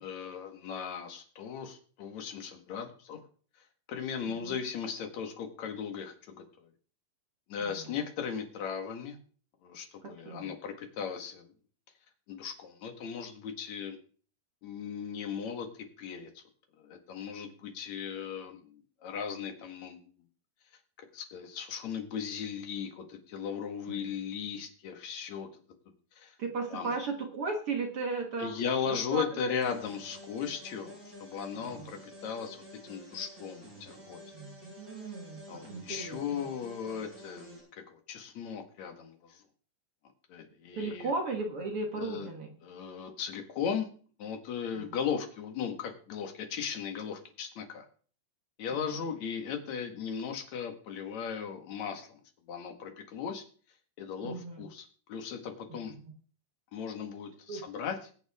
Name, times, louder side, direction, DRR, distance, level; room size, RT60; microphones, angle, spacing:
voice 1, 0.0-3.2 3.9-6.7 7.5-9.2 9.6-11.5 12.3-14.0 14.6-15.7 16.0-16.4 16.8-20.1 21.1-25.5 26.2-26.3 26.7-26.9 28.4-32.6 32.8-34.2 35.5-39.4 40.3-41.1 42.0-42.3 42.6-43.9 44.2-47.8 48.6-52.2 52.5-53.4 54.0-56.0 56.7-58.0, left 7 dB, 55° left, 5 dB, 2.7 m, -37 dB
voice 2, 7.6-7.9 10.0-10.5 23.9-24.1 26.4-28.5 28.9-29.8 31.5-31.9 34.3-36.4 40.7-42.5 44.7-44.9 54.2-54.7 57.5-57.6, right 3 dB, 50° right, 2 dB, 2.0 m, -36 dB
sound 1, 29.6-37.6, equal, 20° right, 6.0 m, -50 dB
21.5 x 7.9 x 3.6 m, 0.43 s
omnidirectional pair, 4.2 m